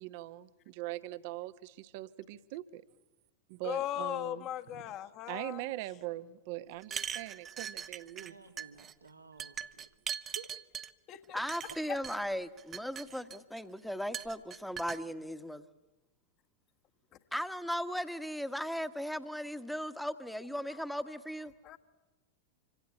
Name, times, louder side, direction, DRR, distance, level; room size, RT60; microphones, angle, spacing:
voice 1, 0.0-2.8 3.5-4.8 5.3-8.3, right 17 dB, 50° right, 14 dB, 1.0 m, -42 dB
voice 2, 3.6-5.6 11.1-11.4 21.6-21.8, left 12 dB, 35° left, 8 dB, 1.5 m, -37 dB
sound 1, 6.8-8.3 8.6-8.9 9.4-10.9 11.5-12.2 12.6-13.6 14.1-15.0, right 8 dB, 25° right, 0.9 m, -40 dB
voice 3, 7.9-9.9 10.2-10.5, right 6 dB, 80° right, 6 dB, 1.9 m, -53 dB
voice 4, 11.3-15.6 17.3-21.5, equal, ahead, 11 dB, 1.3 m, -37 dB
26.0 x 25.5 x 8.5 m, 1.1 s
figure-of-eight pair, 90°, 0 cm